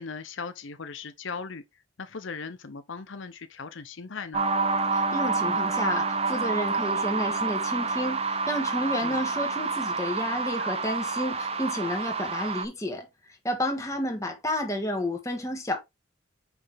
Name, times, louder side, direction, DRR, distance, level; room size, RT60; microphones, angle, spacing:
voice 1, 0.0-4.4 9.0-9.2, left 5 dB, 70° left, 0.7 m, -38 dB
sound 1, 4.3-12.7, right 4 dB, 30° right, 0.7 m, -28 dB
voice 2, 4.9-13.1 13.4-15.8, left 1 dB, 15° left, 1.6 m, -31 dB
6.1 x 5.4 x 3.5 m
head